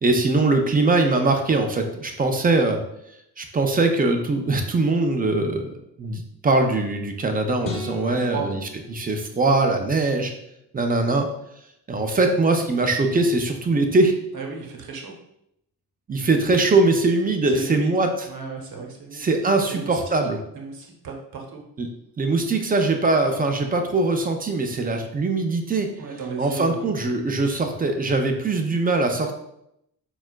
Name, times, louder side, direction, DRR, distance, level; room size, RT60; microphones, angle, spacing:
voice 1, 0.0-2.8 3.4-8.6 8.9-10.3 10.7-11.3 11.9-14.1 16.1-18.3 19.1-20.4 21.8-21.9 22.2-25.9 26.4-29.4, right 2 dB, 20° right, 4 dB, 0.4 m, -21 dB
sound 1, 7.6-10.0, left 2 dB, 30° left, 0.7 m, -38 dB
voice 2, 8.1-8.5 14.3-15.1 17.5-17.9 18.2-19.2 19.7-20.1 20.5-21.6 26.0-26.8, right 5 dB, 50° right, 1 dB, 0.9 m, -35 dB
4.1 x 2.3 x 2.2 m, 0.78 s
hypercardioid pair, 50°, 47 cm